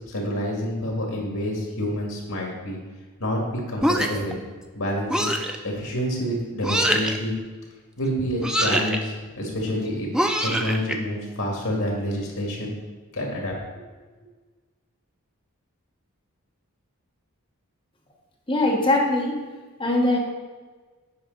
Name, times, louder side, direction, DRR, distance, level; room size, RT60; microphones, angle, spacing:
voice 1, 0.1-2.8 3.2-4.3 4.7-5.3 5.6-7.3 8.0-10.1 10.4-12.7 13.1-13.6, equal, 70° left, -1 dB, 2.0 m, -28 dB
sound 1, 3.8-4.3 5.1-5.6 6.6-7.2 8.4-9.0 10.1-10.9, equal, 5° right, 0.3 m, -23 dB
voice 2, 18.5-19.4 19.8-20.2, left 2 dB, 20° left, -2 dB, 1.2 m, -21 dB
8.1 x 5.0 x 3.9 m, 1.3 s
head